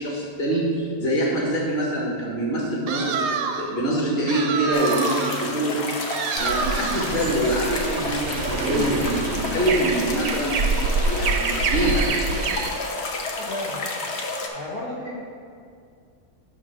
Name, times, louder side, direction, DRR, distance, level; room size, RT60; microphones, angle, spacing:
voice 1, 0.0-3.2 3.6-12.1, right 1 dB, 30° left, -6 dB, 1.6 m, -25 dB
sound 1, 2.9-3.8 4.3-5.5 6.1-7.2, right 5 dB, 90° right, 1.2 m, -28 dB
sound 2, 4.7-14.5, left 3 dB, 55° left, 0.8 m, -31 dB
sound 3, 6.4-12.7, right 4 dB, 65° right, 0.8 m, -26 dB
voice 2, 13.2-13.9 14.5-15.2, left 1 dB, 75° left, -4 dB, 1.6 m, -33 dB
8.8 x 3.0 x 6.1 m, 2.2 s
omnidirectional pair, 1.7 m